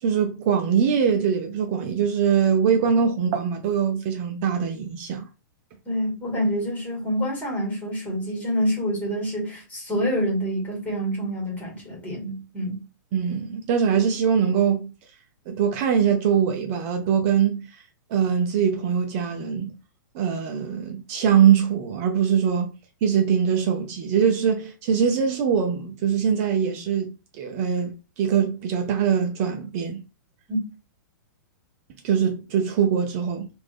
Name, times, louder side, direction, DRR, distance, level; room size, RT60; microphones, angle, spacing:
voice 1, 0.0-5.3 13.1-14.9 15.5-17.8 18.1-19.8 20.1-22.7 23.0-30.0 32.0-33.5, right 7 dB, 45° right, 0.7 m, -22 dB
voice 2, 5.9-12.8 30.5-30.6, equal, 15° left, 2.0 m, -27 dB
3.1 x 2.6 x 3.4 m
hypercardioid pair, 125°, 11 cm